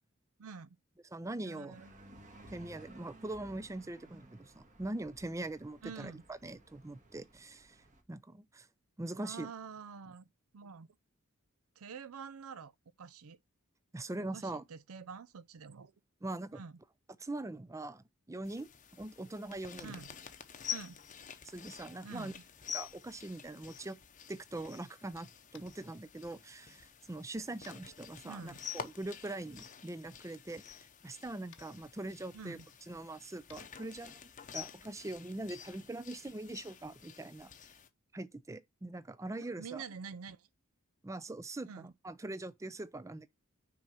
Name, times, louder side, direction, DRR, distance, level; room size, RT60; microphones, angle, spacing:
voice 1, 0.4-0.8 1.4-1.9 5.8-6.2 9.2-10.3 10.5-10.9 11.8-12.7 13.0-13.4 14.2-15.9 16.5-16.8 19.8-20.1 20.7-21.0 22.0-22.4 28.2-28.6 32.3-32.7 39.4-40.5 41.7-41.9, right 5 dB, 75° right, 0.5 m, -47 dB
voice 2, 1.1-1.8 2.5-7.8 8.1-8.7 9.0-9.5 13.9-14.6 16.2-16.6 17.2-18.7 19.0-19.9 21.4-22.3 22.7-24.0 24.3-30.6 31.0-32.6 32.9-34.2 34.5-37.5 38.1-39.8 41.0-43.3, right 2 dB, 15° right, 0.4 m, -42 dB
sound 1, 1.7-8.0, right 1 dB, 35° right, 1.5 m, -57 dB
sound 2, 18.4-37.9, left 8 dB, 35° left, 0.8 m, -48 dB
Tap, 25.5-25.8 27.6-27.8 29.6-29.7 31.5-31.6 33.4-33.6, left 9 dB, 65° left, 0.9 m, -58 dB
6.2 x 4.3 x 5.5 m
head